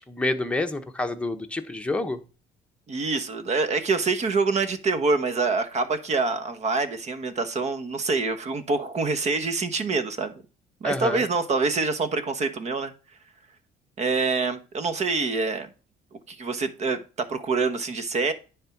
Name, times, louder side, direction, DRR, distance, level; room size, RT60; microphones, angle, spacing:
voice 1, 0.1-2.2 10.8-11.3, left 2 dB, 5° left, 1.0 m, -28 dB
voice 2, 2.9-10.3 10.8-12.9 14.0-15.7 16.3-17.0 17.3-18.3, right 4 dB, 40° right, 1.2 m, -26 dB
10.0 x 3.7 x 5.9 m
cardioid pair, 110°, 17 cm